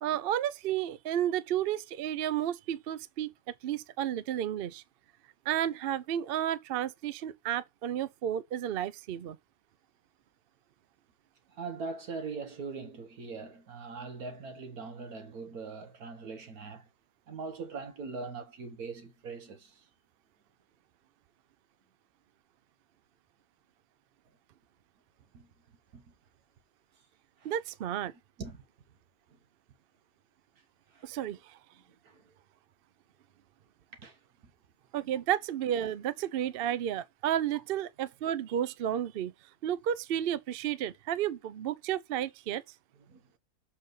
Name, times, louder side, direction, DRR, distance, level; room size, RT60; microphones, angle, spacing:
voice 1, 0.0-3.3 3.6-4.8 5.5-9.4 27.4-28.1 31.0-31.6 34.9-39.3 39.6-42.6, right 10 dB, 60° right, 0.6 m, -32 dB
voice 2, 11.5-16.9 17.3-19.9 25.3-25.5 25.9-26.1 27.4-27.5 28.4-28.6 29.3-29.4 30.9-31.1 32.0-32.3 34.0-34.2 35.1-35.2 43.1-43.2, right 4 dB, 85° right, 1.7 m, -41 dB
7.2 x 4.2 x 3.8 m
omnidirectional pair, 1.5 m